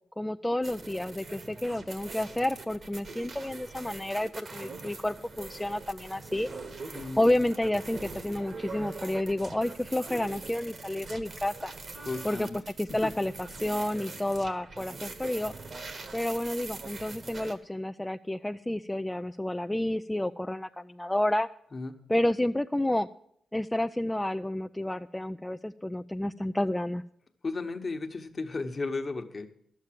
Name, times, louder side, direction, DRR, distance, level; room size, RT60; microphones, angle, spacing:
voice 1, 0.0-6.5 7.2-11.7 12.2-12.5 12.8-15.5 16.1-21.5 22.1-23.1 23.5-27.0, left 1 dB, 10° left, 8 dB, 0.4 m, -30 dB
sound 1, 0.6-17.5, right 3 dB, 50° right, 1.5 m, -43 dB
voice 2, 12.1-12.6 13.0-13.1 21.7-22.0 27.4-29.5, left 3 dB, 40° left, 6 dB, 1.2 m, -34 dB
11.5 x 7.4 x 7.6 m, 0.67 s
cardioid pair, 70°, 0 cm